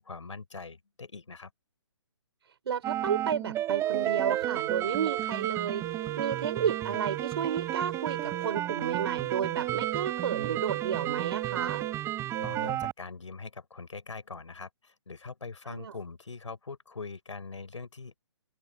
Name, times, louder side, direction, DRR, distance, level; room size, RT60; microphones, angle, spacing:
voice 1, 0.0-1.5 12.4-18.2, left 4 dB, 80° left, 6.2 m, -42 dB
voice 2, 2.7-5.8 6.2-11.9 15.7-15.9, right 8 dB, 55° right, 4.4 m, -32 dB
sound 1, 2.8-12.9, right 13 dB, 15° right, 4.6 m, -33 dB
sound 2, 3.8-12.0 12.3-12.8, right 16 dB, 40° right, 3.6 m, -37 dB
open air
figure-of-eight pair, 140°, 16 cm